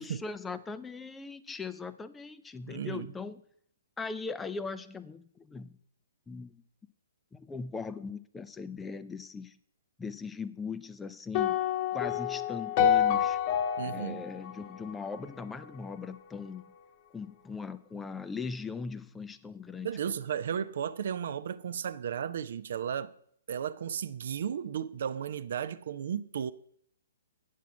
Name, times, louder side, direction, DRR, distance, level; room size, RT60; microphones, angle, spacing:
voice 1, 0.0-3.4 4.0-5.8 6.3-6.6 7.3-9.6 10.0-11.6 11.9-13.4 13.8-16.6 17.1-20.2, left 4 dB, 10° left, 0.4 m, -39 dB
voice 2, 2.7-3.1 13.8-14.3 19.8-23.1 23.5-26.5, right 8 dB, 60° right, 0.4 m, -34 dB
sound 1, 11.3-15.6, left 9 dB, 40° left, 1.0 m, -28 dB
9.2 x 6.3 x 6.0 m
figure-of-eight pair, 125°, 0 cm